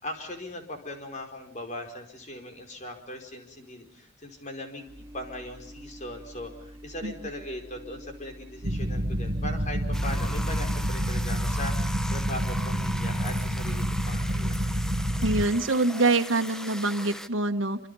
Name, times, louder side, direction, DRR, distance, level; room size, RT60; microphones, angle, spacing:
voice 1, 0.0-11.7 12.1-14.6, left 1 dB, 40° left, 4 dB, 4.9 m, -39 dB
sound 1, 4.9-10.9, right 1 dB, 15° right, 3.7 m, -47 dB
sound 2, 8.6-15.4, equal, 55° right, 1.8 m, -28 dB
sound 3, 9.9-17.3, equal, 5° left, 1.1 m, -39 dB
voice 2, 15.2-17.8, right 2 dB, 85° right, 4 dB, 1.4 m, -25 dB
27.5 x 26.5 x 5.5 m, 0.62 s
head